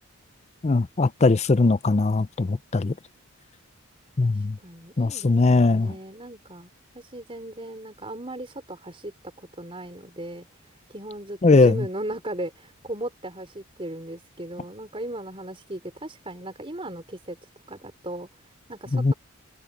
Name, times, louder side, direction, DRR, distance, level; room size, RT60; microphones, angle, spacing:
voice 1, 0.6-2.9 4.2-4.6 5.0-5.9 11.4-11.8 18.9-19.1, left 3 dB, 30° left, 0.4 m, -20 dB
voice 2, 4.2-17.4 17.7-19.1, right 1 dB, 25° right, 4.8 m, -37 dB
head